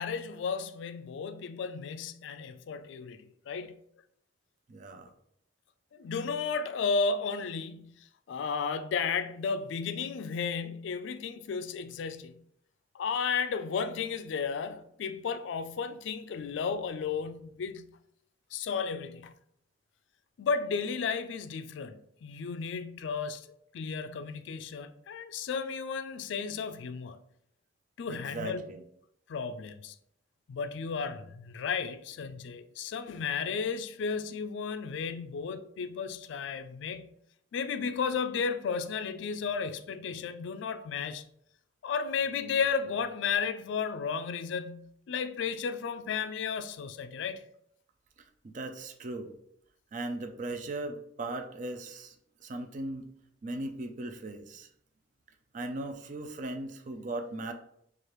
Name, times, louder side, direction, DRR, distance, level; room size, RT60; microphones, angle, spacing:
voice 1, 0.0-3.8 5.9-12.3 12.9-17.9 18.5-19.3 20.4-23.5 23.7-27.2 28.0-28.6 29.3-29.9 30.5-37.1 37.5-41.2 41.8-47.4, left 5 dB, 70° left, 0.3 m, -33 dB
voice 2, 4.7-5.1 28.1-28.9 48.4-49.3 49.9-52.2 52.4-53.0 53.4-54.7 55.5-57.5, right 2 dB, 40° right, 0.4 m, -38 dB
4.7 x 2.4 x 3.0 m
head